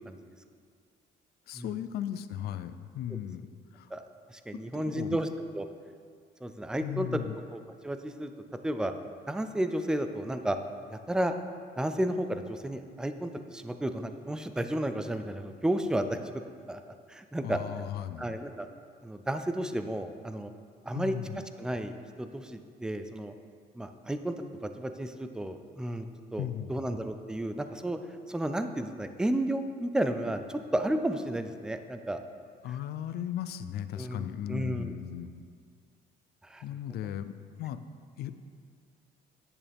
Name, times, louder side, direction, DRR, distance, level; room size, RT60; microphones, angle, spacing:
voice 1, 1.5-3.5 3.7-3.9 4.5-5.2 6.8-7.4 17.4-18.3 20.9-21.4 26.4-26.7 32.6-35.4 36.6-37.8 38.2-38.4, left 10 dB, 70° left, 12 dB, 0.5 m, -37 dB
voice 2, 4.3-5.3 5.5-5.7 6.4-7.1 7.5-8.3 8.6-8.9 9.3-10.6 10.9-11.4 11.8-16.2 16.7-17.6 18.2-18.7 19.0-20.5 20.8-21.2 21.6-23.3 23.7-24.3 24.6-26.1 26.3-28.0 28.3-32.2 32.7-32.8 34.0-34.9 36.4-36.6, right 1 dB, 5° right, 8 dB, 0.4 m, -32 dB
10.0 x 6.9 x 3.5 m, 2.1 s
cardioid pair, 110°, 17 cm